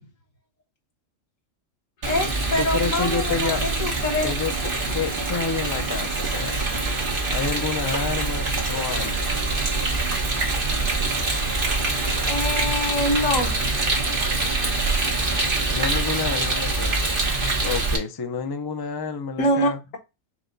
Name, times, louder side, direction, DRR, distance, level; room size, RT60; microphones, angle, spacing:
Rain, 2.0-18.0, right 3 dB, 45° right, 1.4 m, -24 dB
voice 1, 2.1-4.3 12.2-13.5 13.9-14.6 16.4-17.0 19.4-19.7, left 1 dB, 90° left, 1.7 m, -26 dB
voice 2, 2.6-3.6 4.2-4.5 4.9-6.6 7.3-9.2 15.7-17.1 17.6-19.8, left 5 dB, 35° left, 0.4 m, -29 dB
6.0 x 2.2 x 3.8 m
omnidirectional pair, 1.3 m